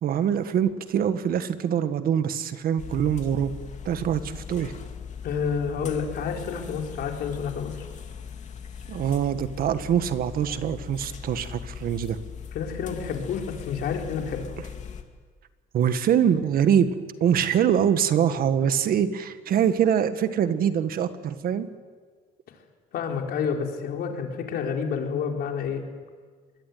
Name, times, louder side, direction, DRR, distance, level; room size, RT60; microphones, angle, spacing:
voice 1, 0.0-3.5 3.8-4.7 8.9-12.2 15.7-21.7, right 9 dB, 60° right, 11 dB, 1.7 m, -24 dB
sound 1, 2.8-15.0, left 7 dB, 45° left, 2.7 m, -39 dB
voice 2, 5.2-7.8 12.5-14.5 22.9-25.8, left 6 dB, 70° left, 2 dB, 4.3 m, -29 dB
24.5 x 20.5 x 9.4 m, 1.5 s
cardioid pair, 110°, 17 cm